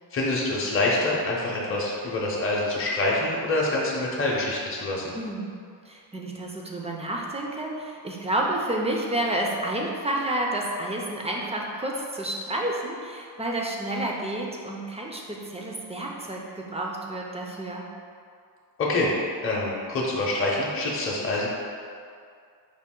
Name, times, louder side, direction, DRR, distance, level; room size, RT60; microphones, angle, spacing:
voice 1, 0.1-5.0 18.8-19.1 19.4-21.5, left 2 dB, 30° left, -4 dB, 0.6 m, -26 dB
voice 2, 5.1-5.6 5.9-17.9, right 1 dB, 15° right, -1 dB, 0.3 m, -30 dB
5.1 x 2.4 x 3.7 m, 2.3 s
wide cardioid pair, 140°, 41 cm